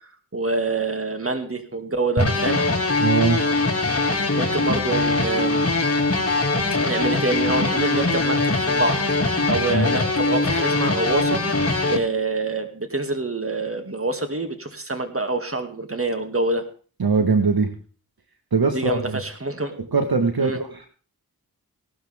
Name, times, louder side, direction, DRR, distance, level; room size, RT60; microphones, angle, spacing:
voice 1, 0.3-2.6 4.3-5.7 6.9-11.6 11.9-16.6 18.7-19.8 20.4-20.6, right 3 dB, 35° right, 7 dB, 2.4 m, -26 dB
sound 1, 2.2-12.0, left 2 dB, 40° left, 2.4 m, -22 dB
voice 2, 3.0-3.4 17.0-17.7 18.5-19.2 19.8-20.9, right 4 dB, 70° right, 6 dB, 1.6 m, -21 dB
17.5 x 12.5 x 3.6 m, 0.40 s
cardioid pair, 45°, 38 cm